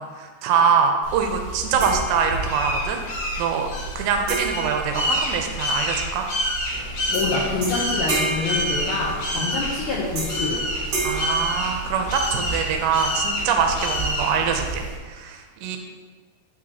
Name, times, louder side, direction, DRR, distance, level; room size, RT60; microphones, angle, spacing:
voice 1, 0.0-3.0 3.4-3.7 3.9-6.3 9.3-9.5 11.0-15.8, right 6 dB, 85° right, 3 dB, 2.8 m, -24 dB
sound 1, 1.0-15.0, equal, 55° left, 2.4 m, -28 dB
sound 2, 1.8-2.8 4.3-5.9 7.1-7.3 7.6-9.4 10.2-10.6 10.9-12.4, right 3 dB, 55° right, 3.2 m, -31 dB
sound 3, 6.7-14.8, right 3 dB, 70° right, 2.9 m, -43 dB
voice 2, 7.1-10.7, left 4 dB, 80° left, -4 dB, 1.7 m, -26 dB
9.8 x 6.2 x 3.0 m, 1.4 s
omnidirectional pair, 5.0 m